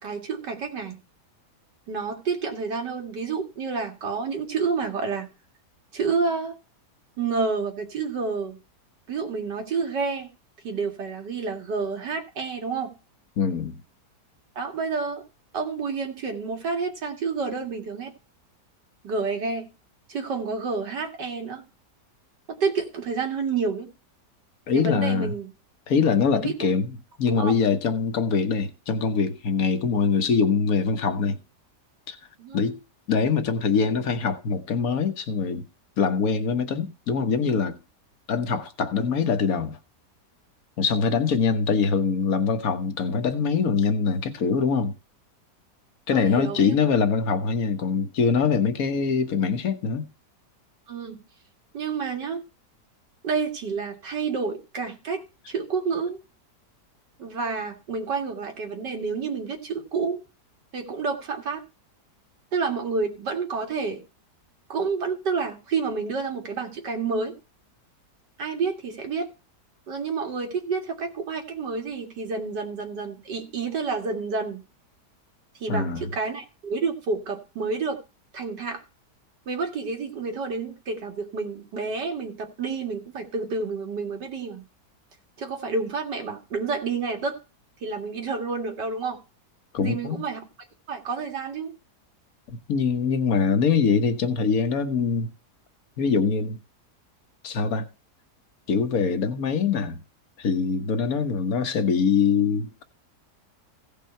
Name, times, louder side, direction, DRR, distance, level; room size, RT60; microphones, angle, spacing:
voice 1, 0.0-1.0 1.9-5.3 5.9-6.5 7.2-8.6 9.1-10.3 10.6-12.9 14.6-15.2 15.5-18.1 19.0-19.7 20.1-21.6 22.6-23.9 24.7-25.5 26.3-26.7 27.3-27.5 32.4-32.6 46.1-46.8 50.9-51.2 51.7-52.4 53.2-56.2 57.2-60.2 60.7-61.6 62.5-64.0 64.7-67.3 68.4-69.3 69.9-74.6 75.6-78.0 78.3-78.8 79.5-84.7 85.4-87.4 87.8-89.2 89.8-90.5 90.9-91.7, right 4 dB, 85° right, 2.7 m, -29 dB
voice 2, 13.4-13.8 24.7-25.3 25.9-31.4 32.1-32.2 32.5-32.8 33.1-35.6 36.0-37.8 38.3-39.8 40.8-44.9 46.1-50.1 75.7-76.0 89.7-90.2 92.5-95.3 96.0-96.6 97.4-97.9 98.7-100.0 100.4-102.8, left 5 dB, 60° left, 1.5 m, -23 dB
16.0 x 5.6 x 4.4 m
omnidirectional pair, 1.8 m